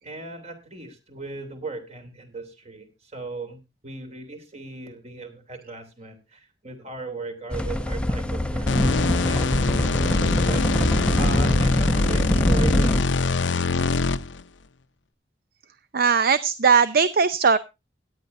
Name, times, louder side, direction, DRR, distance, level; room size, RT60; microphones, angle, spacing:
voice 1, 0.0-13.0, right 3 dB, 35° right, 7 dB, 3.3 m, -38 dB
sound 1, 7.5-13.0, equal, 5° left, 0.8 m, -24 dB
sound 2, 8.7-14.4, left 3 dB, 75° left, 0.6 m, -23 dB
voice 2, 15.9-17.6, right 5 dB, 55° right, 13 dB, 0.6 m, -19 dB
17.0 x 11.0 x 2.6 m, 0.26 s
head